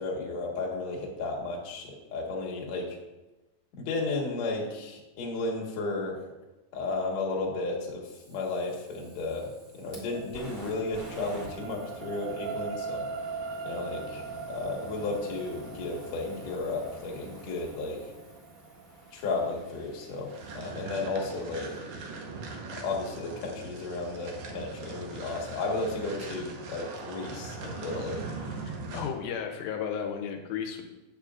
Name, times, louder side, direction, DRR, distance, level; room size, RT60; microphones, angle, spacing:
voice 1, 0.0-3.0 3.8-6.2 6.7-9.5 9.8-13.1 13.7-18.1 19.1-21.7 22.8-28.2, left 3 dB, 60° left, -1 dB, 2.3 m, -33 dB
Fire, 8.0-21.2, right 1 dB, 30° right, 1.6 m, -49 dB
sound 1, 9.3-21.8 22.4-22.5, right 5 dB, 85° right, 1.8 m, -41 dB
sound 2, 20.3-29.3, right 3 dB, 70° right, 2.1 m, -40 dB
voice 2, 28.7-30.9, left 7 dB, 85° left, 3 dB, 2.5 m, -34 dB
8.8 x 8.2 x 2.4 m, 1.0 s
omnidirectional pair, 4.1 m